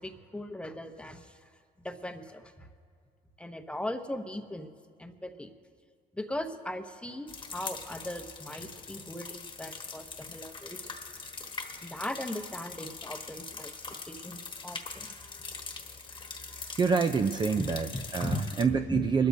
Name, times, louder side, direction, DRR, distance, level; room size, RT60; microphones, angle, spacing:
voice 1, 0.0-1.4 1.8-2.7 3.4-4.7 5.0-5.5 6.1-10.8 11.8-13.7 14.1-15.1 17.5-17.7 18.2-18.4 18.9-19.3, left 1 dB, 5° left, 6 dB, 0.8 m, -38 dB
sound 1, 7.3-18.6, left 4 dB, 30° left, 1.3 m, -42 dB
voice 2, 16.8-19.3, right 5 dB, 25° right, 7 dB, 0.5 m, -27 dB
26.5 x 13.0 x 2.7 m, 2.1 s
cardioid pair, 110°, 17 cm